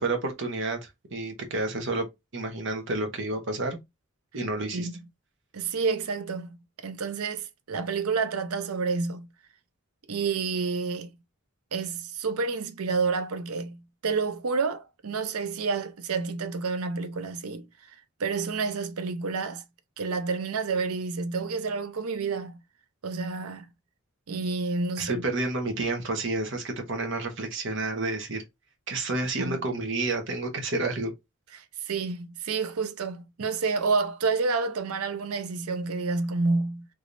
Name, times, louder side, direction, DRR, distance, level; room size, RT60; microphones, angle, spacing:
voice 1, 0.0-2.1 2.3-3.8 4.3-4.9 25.0-28.4 28.9-31.1, right 2 dB, 55° right, 1.1 m, -30 dB
voice 2, 5.5-6.6 6.8-9.3 10.1-11.1 11.7-17.7 18.2-19.6 20.0-22.6 23.0-23.7 24.3-25.3 29.4-29.7 31.5-36.9, right 4 dB, 90° right, 0.6 m, -29 dB
3.4 x 3.0 x 2.6 m
head